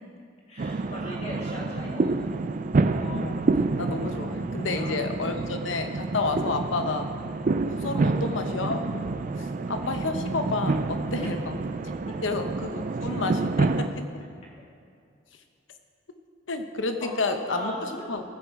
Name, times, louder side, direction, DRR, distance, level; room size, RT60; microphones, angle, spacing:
voice 1, 0.5-2.1 4.6-5.0 9.3-9.5 11.2-11.3 12.1-12.2 17.0-18.1, equal, 35° left, -4 dB, 2.3 m, -38 dB
sound 1, 0.6-13.9, right 3 dB, 45° right, 0.4 m, -28 dB
voice 2, 3.0-3.4 3.8-7.1 7.6-9.2 9.7-11.5 12.2-13.9 16.5-17.7 18.1-18.2, left 3 dB, 85° left, 6 dB, 0.9 m, -30 dB
14.5 x 6.6 x 4.7 m, 2.4 s
head